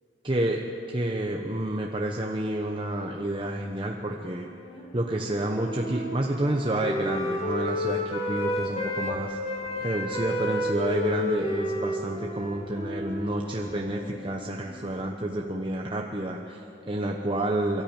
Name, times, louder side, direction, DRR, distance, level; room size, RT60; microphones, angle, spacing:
voice 1, 0.2-0.6 0.9-4.5 4.9-9.4 9.8-17.8, right 1 dB, 30° right, 1 dB, 1.0 m, -29 dB
Wind instrument woodwind instrument, 4.2-9.2 9.4-14.7, left 1 dB, 30° left, 2.3 m, -32 dB
sound 1, 8.4-9.9 10.2-10.5 10.8-11.6 11.9-12.2 12.5-15.2, equal, 75° left, 6.3 m, -50 dB
23.5 x 13.5 x 8.9 m, 2.8 s
head